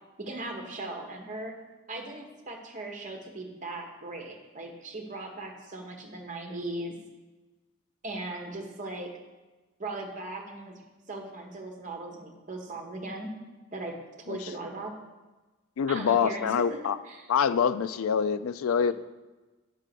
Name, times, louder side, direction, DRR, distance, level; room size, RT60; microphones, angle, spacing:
voice 1, 0.2-1.5 1.9-7.0 8.0-9.1 9.8-10.8 11.1-13.3 13.7-14.0 14.3-14.9 15.9-16.8 17.0-17.3, right 2 dB, 35° right, 1 dB, 1.2 m, -38 dB
voice 2, 15.8-17.0 17.3-18.9, left 7 dB, 75° left, 14 dB, 0.3 m, -25 dB
9.1 x 3.8 x 6.7 m, 1.2 s
head